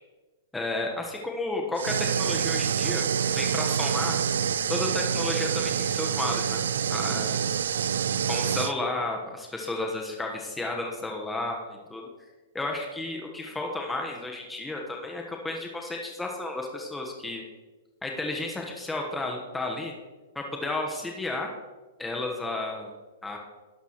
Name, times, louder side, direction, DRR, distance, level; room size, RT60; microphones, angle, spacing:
voice 1, 0.5-3.1 3.3-4.2 4.7-7.6 8.2-12.1 12.5-17.4 18.0-19.9 20.3-21.5 22.0-22.9 23.2-23.4, left 2 dB, 10° left, 0 dB, 1.3 m, -32 dB
sound 1, 1.8-8.7, right 8 dB, 75° right, 0.4 m, -27 dB
12.0 x 11.0 x 3.1 m, 1.3 s
hypercardioid pair, 125°, 0 cm